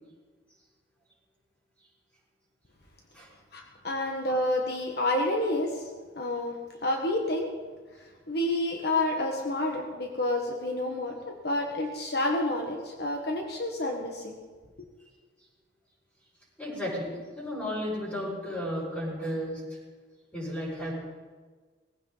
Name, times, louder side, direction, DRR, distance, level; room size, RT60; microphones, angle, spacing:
voice 1, 3.5-6.5 6.8-7.5 8.3-14.4, left 1 dB, 55° left, 2 dB, 1.5 m, -29 dB
voice 2, 16.6-19.8 20.3-20.9, equal, 10° left, -8 dB, 5.9 m, -33 dB
19.0 x 15.5 x 4.0 m, 1.4 s
head